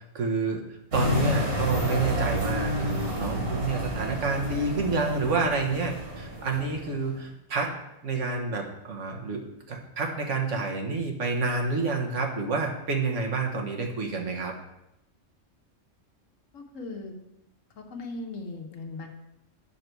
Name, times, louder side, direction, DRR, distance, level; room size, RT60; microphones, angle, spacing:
voice 1, 0.1-0.6 0.9-7.7 8.0-14.5, right 3 dB, 70° right, 2 dB, 1.6 m, -29 dB
sound 1, 0.9-7.2, equal, 50° right, 2.0 m, -30 dB
voice 2, 16.5-17.2 17.8-19.1, left 3 dB, 90° left, 3 dB, 1.3 m, -38 dB
8.4 x 6.7 x 4.6 m, 0.88 s
omnidirectional pair, 1.3 m